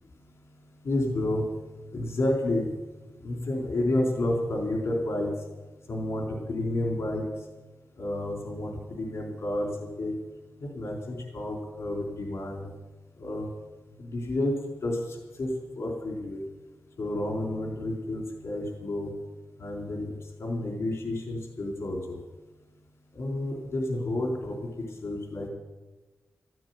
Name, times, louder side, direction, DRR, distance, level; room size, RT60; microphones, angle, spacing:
voice 1, 0.8-1.4 1.9-2.7 3.2-5.3 5.9-7.2 8.0-9.7 10.0-10.1 10.6-12.7 13.2-13.5 14.0-14.5 14.8-15.5 15.8-16.4 17.0-19.1 19.6-22.2 23.1-24.6 25.0-25.5, left 1 dB, 70° left, 0 dB, 4.0 m, -30 dB
14.0 x 9.2 x 9.5 m, 1.2 s
wide cardioid pair, 100°, 5 cm